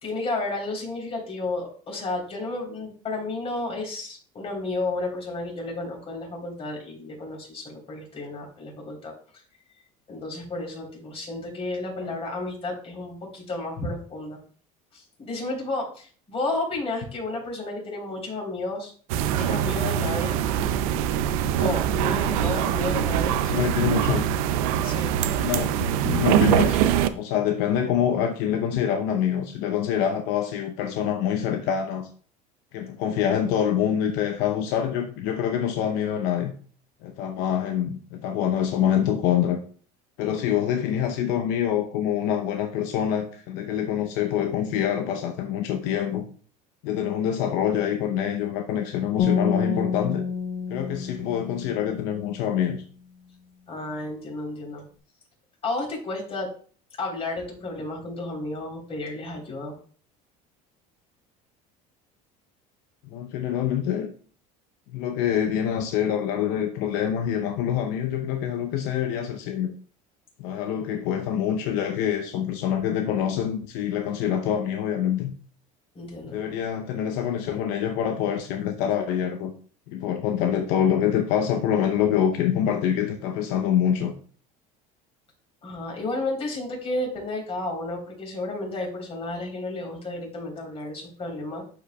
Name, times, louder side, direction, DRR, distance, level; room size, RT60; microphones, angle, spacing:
voice 1, 0.0-9.1 10.1-14.4 14.9-18.9 19.4-20.4 21.5-23.3 24.8-25.1 40.2-40.4 53.7-54.8 55.6-56.5 57.0-59.7 75.9-76.4 85.6-91.6, left 2 dB, 35° left, -1 dB, 3.6 m, -32 dB
sound 1, 19.1-27.1, right 10 dB, 90° right, 0.5 m, -23 dB
voice 2, 23.2-24.3 25.4-26.8 27.1-32.1 32.7-36.5 37.0-39.6 40.2-46.2 46.8-50.2 50.7-52.8 63.0-64.1 64.9-69.7 70.4-75.3 76.2-79.5 79.9-84.1, left 9 dB, 75° left, 5 dB, 0.7 m, -25 dB
sound 2, 49.2-52.4, left 6 dB, 50° left, 1.6 m, -28 dB
11.5 x 5.0 x 2.3 m, 0.44 s
supercardioid pair, 115°, 18 cm